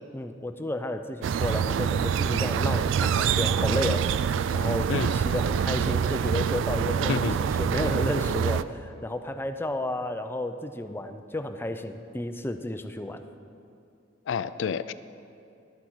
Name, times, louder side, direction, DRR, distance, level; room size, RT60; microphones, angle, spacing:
voice 1, 0.1-4.1 4.5-13.2, left 1 dB, 10° left, 7 dB, 0.5 m, -32 dB
sound 1, 1.2-8.6, right 7 dB, 80° right, 0.3 m, -25 dB
voice 2, 14.3-14.9, left 6 dB, 70° left, 15 dB, 0.4 m, -29 dB
12.0 x 8.3 x 6.2 m, 2.6 s
head